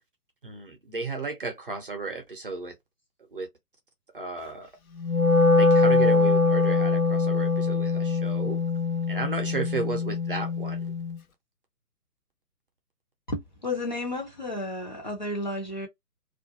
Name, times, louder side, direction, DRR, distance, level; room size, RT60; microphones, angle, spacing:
voice 1, 0.4-2.8 3.3-3.5 4.1-4.7 5.6-8.6 9.1-10.8, right 3 dB, 35° right, 0.7 m, -34 dB
Wind instrument woodwind instrument, 5.0-11.2, left 3 dB, 65° left, 0.7 m, -23 dB
voice 2, 13.3-15.9, left 2 dB, 30° left, 0.6 m, -32 dB
2.4 x 2.1 x 2.7 m
figure-of-eight pair, 140°, 47 cm